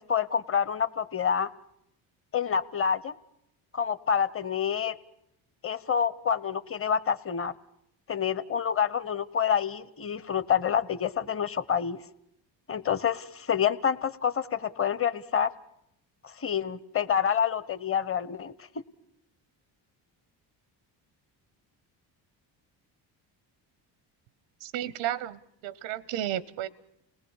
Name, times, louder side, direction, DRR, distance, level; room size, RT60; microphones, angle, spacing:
voice 1, 0.0-1.5 2.3-3.1 3.7-5.0 5.6-7.5 8.1-12.0 12.7-15.5 16.2-18.5, left 7 dB, 25° left, 16 dB, 0.9 m, -27 dB
voice 2, 24.6-26.7, right 12 dB, 90° right, 19 dB, 0.8 m, -33 dB
29.0 x 18.5 x 7.1 m, 0.81 s
supercardioid pair, 65°, 48 cm